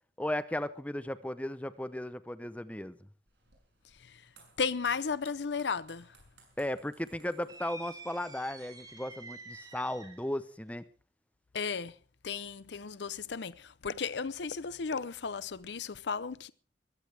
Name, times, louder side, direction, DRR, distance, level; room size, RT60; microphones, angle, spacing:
voice 1, 0.2-3.0 6.6-10.8, left 1 dB, 10° left, 0.7 m, -36 dB
sound 1, 3.3-9.0, right 5 dB, 80° right, 7.7 m, -63 dB
voice 2, 3.8-6.2 11.5-12.0 12.2-16.5, left 5 dB, 80° left, 0.7 m, -35 dB
sound 2, 7.5-10.4, right 3 dB, 20° right, 2.7 m, -49 dB
22.0 x 15.0 x 3.4 m
head